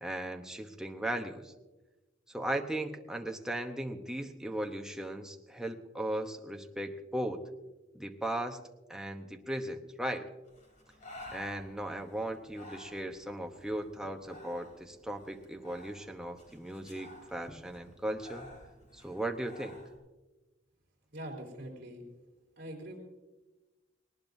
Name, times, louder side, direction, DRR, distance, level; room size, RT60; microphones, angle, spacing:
voice 1, 0.0-1.5 2.3-7.4 7.9-8.6 8.9-10.3 11.3-18.5 18.9-19.8, right 1 dB, 5° right, 3 dB, 0.9 m, -37 dB
Breathing, 10.5-20.0, left 1 dB, 40° left, 3.5 m, -53 dB
voice 2, 21.1-22.0 22.6-23.0, right 1 dB, 50° right, -1 dB, 3.8 m, -43 dB
19.5 x 19.0 x 2.7 m, 1.1 s
head